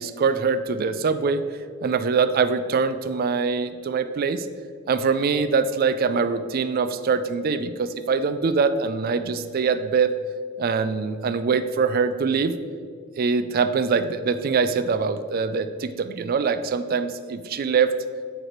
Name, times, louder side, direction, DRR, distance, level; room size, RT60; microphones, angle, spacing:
voice 1, 0.0-1.4 1.8-4.5 4.9-10.1 10.6-12.5 13.2-17.9, right 5 dB, 50° right, 11 dB, 0.3 m, -23 dB
8.7 x 3.3 x 4.5 m, 2.1 s
head